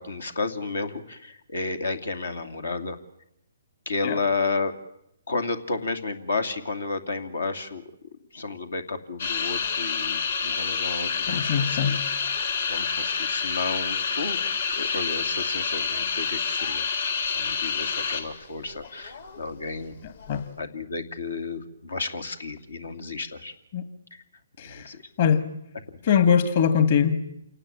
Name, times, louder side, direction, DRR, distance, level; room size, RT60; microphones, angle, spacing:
voice 1, 0.0-3.0 3.9-4.7 5.3-7.8 8.3-12.0 12.7-16.9 17.3-20.0 20.6-23.5 24.1-24.2 24.6-25.0, left 3 dB, 85° left, 10 dB, 2.6 m, -32 dB
sound 1, 9.2-18.4 18.7-19.4 20.0-20.4, left 6 dB, 65° left, 3.6 m, -28 dB
voice 2, 11.3-12.0 20.0-20.5 23.7-23.8 24.6-24.9 25.2-25.4 26.0-27.2, left 7 dB, 50° left, 11 dB, 2.1 m, -22 dB
28.0 x 18.5 x 8.9 m, 0.80 s
hypercardioid pair, 145°, 0 cm